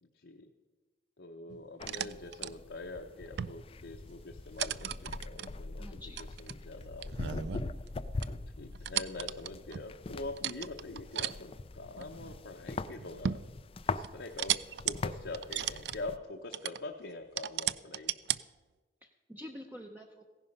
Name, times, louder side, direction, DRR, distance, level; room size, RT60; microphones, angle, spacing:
voice 1, 0.0-0.5 1.2-6.0 6.4-7.5 8.3-13.5 13.9-14.6 14.8-18.2, left 2 dB, 75° left, 2 dB, 0.9 m, -44 dB
sound 1, 1.5-2.5 3.3-3.7 4.0-4.2 4.6-5.5 6.2-8.0 8.2-8.3 8.7-9.9 10.4-11.3 12.0-12.4 12.9-13.5 14.0-15.0 15.3-16.0 16.5-16.8 17.4-18.4, right 10 dB, 60° right, 0.3 m, -35 dB
sound 2, 1.8-16.2, left 3 dB, 30° left, 0.4 m, -42 dB
voice 2, 5.8-6.2 19.0-20.3, left 1 dB, 10° right, 2 dB, 0.7 m, -47 dB
16.0 x 11.0 x 5.4 m, 1.3 s
head